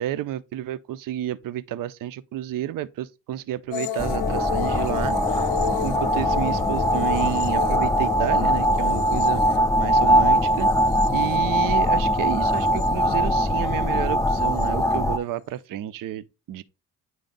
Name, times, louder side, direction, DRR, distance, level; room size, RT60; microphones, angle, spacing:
voice 1, 0.0-10.7 11.1-16.6, right 12 dB, 45° right, 0.6 m, -31 dB
sound 1, 3.7-11.9 12.3-13.1 14.4-14.7, left 11 dB, 75° left, 0.6 m, -33 dB
sound 2, 4.0-15.2, equal, 5° left, 0.6 m, -21 dB
9.2 x 3.2 x 3.9 m
hypercardioid pair, 45°, 47 cm